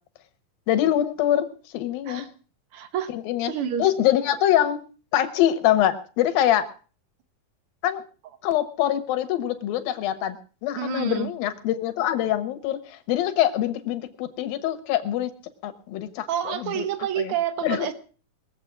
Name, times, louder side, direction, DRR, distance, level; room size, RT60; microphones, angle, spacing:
voice 1, 0.7-1.5 1.7-2.3 3.1-3.5 3.8-4.8 5.1-6.7 7.8-8.0 8.4-10.4 10.6-15.3 15.6-16.3 16.6-16.9 17.2-17.3 17.6-17.9, left 12 dB, 90° left, 9 dB, 3.0 m, -24 dB
voice 2, 2.7-3.1 3.4-3.9 10.7-11.3 16.3-17.9, right 10 dB, 60° right, 10 dB, 1.5 m, -28 dB
21.5 x 7.7 x 6.0 m, 0.39 s
omnidirectional pair, 4.0 m